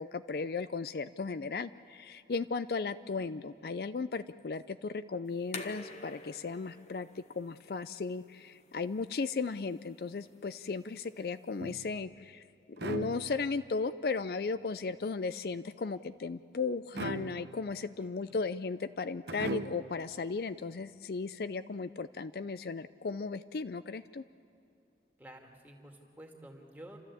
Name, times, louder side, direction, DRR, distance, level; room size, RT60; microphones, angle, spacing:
voice 1, 0.0-12.4 12.8-24.2, left 4 dB, 60° left, 12 dB, 0.4 m, -36 dB
sound 1, 5.3-11.9, left 3 dB, 40° left, 1.1 m, -50 dB
sound 2, 11.6-12.2 12.8-13.7 16.9-17.8 19.3-20.0, right 2 dB, 75° right, 1.0 m, -39 dB
voice 2, 25.2-27.0, right 1 dB, 10° right, 1 dB, 2.2 m, -50 dB
29.5 x 13.5 x 8.4 m, 2.6 s
head